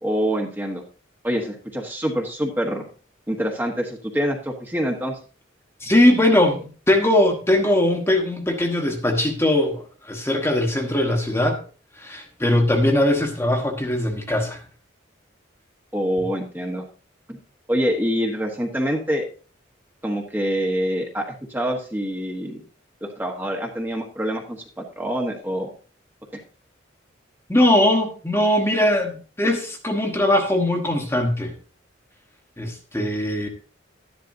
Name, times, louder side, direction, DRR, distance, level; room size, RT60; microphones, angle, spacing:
voice 1, 0.0-0.8 1.2-2.9 3.3-5.2 15.9-16.8 17.3-17.4 17.7-19.2 20.0-22.6 23.0-25.7 26.3-26.4, equal, 10° right, 1.2 m, -26 dB
voice 2, 5.8-11.6 12.0-14.6 16.2-16.3 27.5-31.6 32.6-33.5, left 1 dB, 15° left, 1.3 m, -20 dB
12.0 x 10.5 x 2.7 m
head